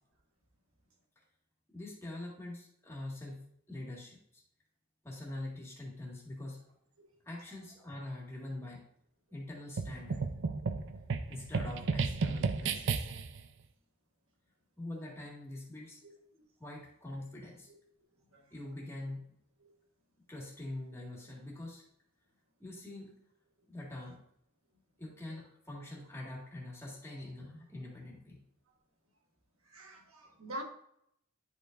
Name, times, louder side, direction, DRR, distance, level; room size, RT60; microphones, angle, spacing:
voice 1, 1.7-4.4 5.0-6.6 7.3-8.8 9.3-10.3 11.3-13.1 14.8-16.0 16.6-17.7 18.5-19.2 20.3-21.8 22.6-23.1 23.7-24.2 25.0-28.4, left 1 dB, 15° left, 1.9 m, -44 dB
sound 1, 9.8-13.4, right 4 dB, 60° right, 0.5 m, -33 dB
voice 2, 29.7-30.6, right 1 dB, 80° right, 1.5 m, -44 dB
10.0 x 5.1 x 2.6 m
head